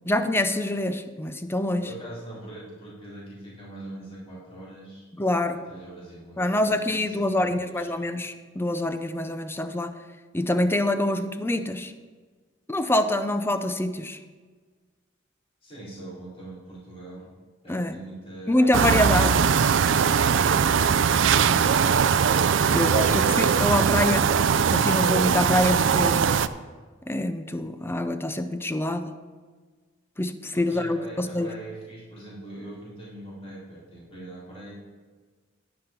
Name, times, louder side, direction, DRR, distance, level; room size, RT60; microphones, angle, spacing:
voice 1, 0.1-1.9 5.1-5.6 6.4-9.9 10.3-11.9 12.7-14.2 17.7-18.0 18.5-19.4 21.5-21.8 22.7-24.3 24.7-26.4 27.1-29.1 30.2-31.5, left 1 dB, 10° left, 9 dB, 0.6 m, -25 dB
voice 2, 1.8-5.1 5.5-7.9 15.6-17.3 17.6-18.7 30.5-34.8, right 1 dB, 30° left, -8 dB, 4.0 m, -42 dB
sound 1, 18.7-26.5, right 6 dB, 75° right, 0.4 m, -21 dB
10.5 x 10.0 x 4.5 m, 1.4 s
head